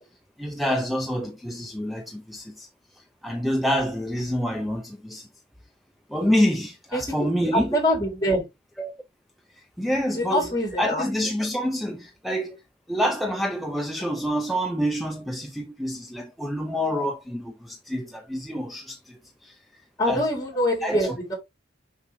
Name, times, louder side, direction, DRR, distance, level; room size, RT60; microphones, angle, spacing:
voice 1, 0.4-2.7 3.2-5.3 6.1-7.8 8.8-8.9 9.8-12.6 12.9-19.6 20.0-20.3 20.8-21.3, equal, ahead, 0.6 m, -27 dB
voice 2, 6.9-8.4 10.1-11.1 20.0-21.3, equal, 20° left, 3.1 m, -25 dB
6.3 x 5.4 x 3.1 m
head